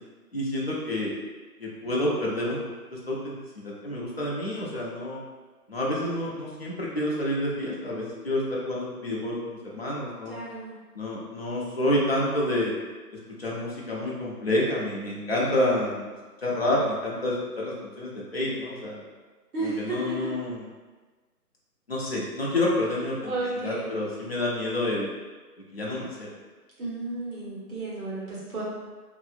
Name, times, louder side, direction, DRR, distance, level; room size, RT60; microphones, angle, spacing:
voice 1, 0.3-1.1 1.6-5.2 5.7-10.4 11.0-12.7 13.1-16.0 16.4-19.0 19.6-20.7 21.9-23.3 23.6-25.1 25.7-26.3, left 1 dB, 45° left, -5 dB, 0.4 m, -28 dB
voice 2, 10.3-10.8 19.5-20.3 23.2-23.9 26.8-28.6, right 2 dB, 65° right, -7 dB, 1.3 m, -33 dB
2.7 x 2.5 x 2.4 m, 1.3 s
hypercardioid pair, 175°, 47 cm